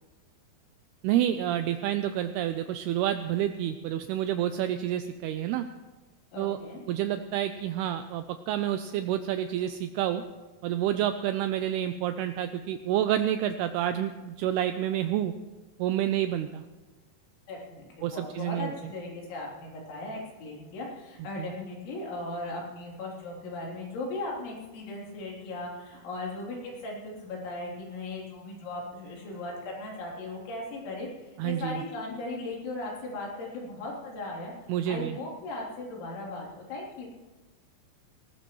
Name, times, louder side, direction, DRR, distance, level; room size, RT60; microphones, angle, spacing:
voice 1, 1.0-5.7 6.4-6.6 6.9-10.2 10.6-15.3 15.8-16.6 18.0-18.7 21.4-21.5 31.4-31.8 34.7-35.2, right 11 dB, 85° right, 9 dB, 2.3 m, -29 dB
voice 2, 6.3-6.8 17.5-34.5 34.9-37.1, left 2 dB, 90° left, -3 dB, 5.8 m, -37 dB
19.5 x 19.0 x 3.1 m, 1.2 s
omnidirectional pair, 5.2 m